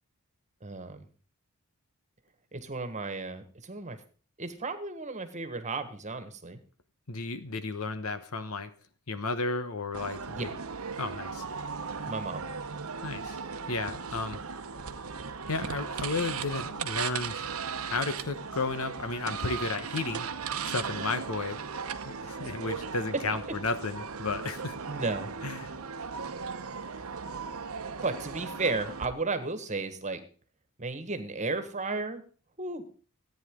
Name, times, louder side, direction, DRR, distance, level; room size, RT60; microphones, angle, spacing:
voice 1, 0.6-1.1 2.5-4.0 4.4-6.6 10.3-10.4 12.1-12.4 24.9-25.3 28.0-30.2 30.8-32.2 32.6-32.8, right 3 dB, 35° right, 8 dB, 1.6 m, -34 dB
voice 2, 7.1-8.7 9.1-10.5 11.0-11.4 13.0-13.4 13.7-14.4 15.5-20.3 20.6-21.6 22.0-24.8 25.4-25.7, left 3 dB, 75° left, 11 dB, 1.2 m, -33 dB
sound 1, 9.9-29.1, right 5 dB, 70° right, 0.9 m, -37 dB
14.0 x 9.3 x 3.8 m, 0.41 s
head